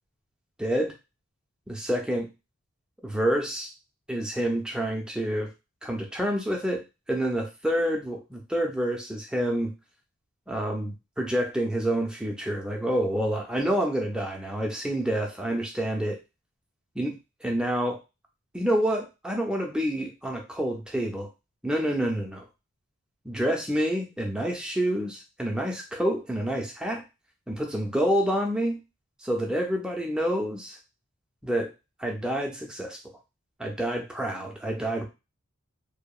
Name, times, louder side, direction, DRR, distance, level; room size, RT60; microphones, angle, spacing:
voice 1, 0.6-0.9 1.7-2.3 3.0-3.7 4.1-5.5 5.8-6.8 7.1-9.7 10.5-16.2 17.0-17.1 17.4-18.0 18.5-21.3 21.6-22.4 23.2-27.0 27.5-28.8 29.2-30.8 31.4-31.7 32.0-33.0 33.6-35.1, right 1 dB, 5° right, 0 dB, 0.4 m, -28 dB
2.8 x 2.2 x 2.3 m, 0.26 s
head